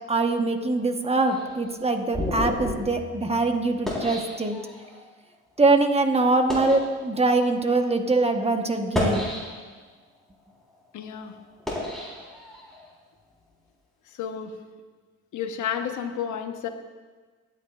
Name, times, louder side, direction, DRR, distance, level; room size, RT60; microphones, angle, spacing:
voice 1, 0.1-4.6 5.6-9.3, right 3 dB, 20° right, 5 dB, 1.1 m, -23 dB
sound 1, 1.3-5.0 5.7-5.8 6.3-6.9 7.7-7.8 8.7-9.8 10.4-12.9, left 1 dB, ahead, 4.0 m, -32 dB
voice 2, 10.9-11.3 14.2-14.5 15.3-16.7, left 8 dB, 75° left, 6 dB, 1.2 m, -31 dB
22.5 x 9.2 x 2.5 m, 1.4 s
cardioid pair, 90°, 30 cm